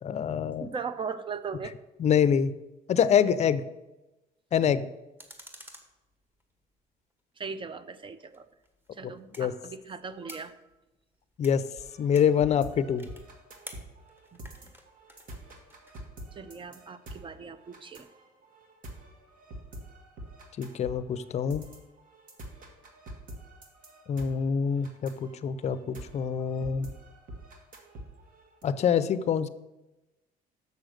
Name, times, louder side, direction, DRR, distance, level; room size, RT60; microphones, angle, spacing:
voice 1, 0.0-0.7 2.0-2.5 2.9-3.6 4.5-4.9 9.4-9.5 11.4-11.6 12.0-13.0 20.6-21.6 24.1-26.9 28.6-29.5, left 7 dB, 40° left, 14 dB, 0.5 m, -25 dB
voice 2, 0.6-1.7 7.4-8.5 8.9-10.5 14.3-14.4 16.3-18.1, right 5 dB, 30° right, 13 dB, 0.6 m, -38 dB
sound 1, 5.2-6.8 8.2-16.0, equal, 10° right, 1.3 m, -52 dB
sound 2, 11.8-28.6, right 1 dB, 55° right, 1.8 m, -46 dB
6.8 x 6.2 x 6.5 m, 1.0 s
cardioid pair, 110°, 17 cm